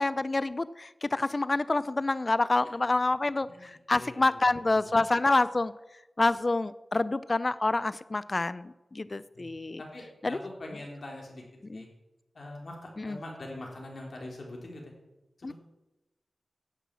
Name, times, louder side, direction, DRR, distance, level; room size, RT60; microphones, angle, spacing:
voice 1, 0.0-5.7 6.2-9.8 10.2-10.4 11.7-11.8 13.0-13.2 15.4-15.5, left 2 dB, 40° left, 17 dB, 0.5 m, -27 dB
voice 2, 3.4-4.4 4.8-4.9 9.3-9.5 9.8-11.4 11.7-11.9 12.3-14.9 15.4-15.5, left 1 dB, 65° left, 0 dB, 3.5 m, -43 dB
11.5 x 8.1 x 7.4 m, 1.0 s
cardioid pair, 55°, 0 cm